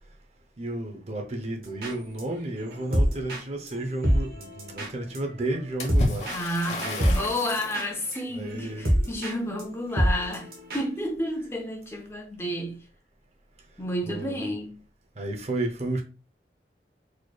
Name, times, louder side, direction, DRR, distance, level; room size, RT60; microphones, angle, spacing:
voice 1, 0.6-6.3 6.6-7.1 8.3-8.9 14.0-14.4 15.2-16.0, right 2 dB, 40° right, 0.6 m, -32 dB
sound 1, 1.6-2.2 2.6-9.3 9.6-9.7 9.9-10.8, equal, 60° right, 1.0 m, -27 dB
Water / Splash splatter, 5.8-7.9, left 1 dB, 40° left, 1.0 m, -32 dB
voice 2, 6.3-12.8 13.8-14.7, equal, 15° left, 0.7 m, -31 dB
4.2 x 3.1 x 2.3 m
head